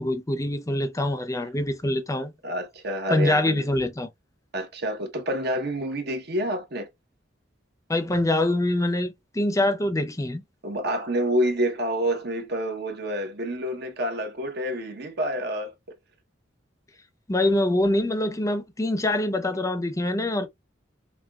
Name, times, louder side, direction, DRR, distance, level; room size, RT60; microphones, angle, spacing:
voice 1, 0.0-2.3 3.1-4.1 7.9-10.4 17.3-20.5, left 1 dB, 15° left, 0.6 m, -24 dB
voice 2, 2.4-3.6 4.5-6.9 10.6-15.7, right 1 dB, 60° right, 1.0 m, -28 dB
5.8 x 2.3 x 2.3 m
head